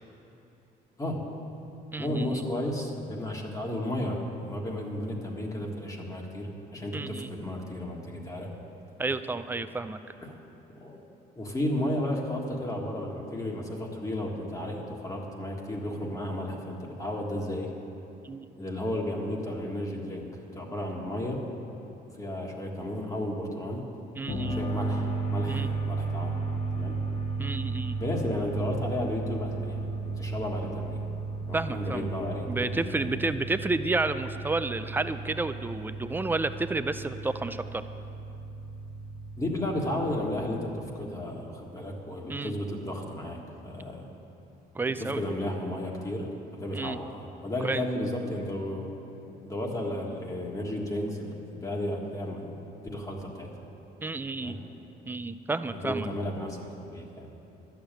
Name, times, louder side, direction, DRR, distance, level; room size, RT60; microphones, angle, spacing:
voice 1, 1.0-1.3 2.0-8.5 10.2-10.4 10.7-11.0 11.4-17.7 18.6-21.4 22.1-23.9 24.5-26.4 26.7-26.9 28.0-31.0 31.4-33.4 39.4-44.1 45.0-48.9 49.4-52.6 52.9-53.5 54.4-54.6 55.7-57.3, left 1 dB, 20° left, 0 dB, 1.7 m, -33 dB
voice 2, 1.9-2.4 6.9-7.3 9.0-10.2 18.2-18.5 24.2-24.6 25.5-25.7 27.4-28.0 31.5-32.1 32.5-37.8 42.3-42.5 44.7-45.2 46.7-47.0 47.6-47.8 54.0-54.6 55.1-56.1, right 3 dB, 10° right, 11 dB, 0.5 m, -31 dB
sound 1, 24.3-40.3, right 3 dB, 45° left, 1.9 m, -34 dB
11.5 x 7.2 x 9.0 m, 2.9 s
cardioid pair, 110°, 17 cm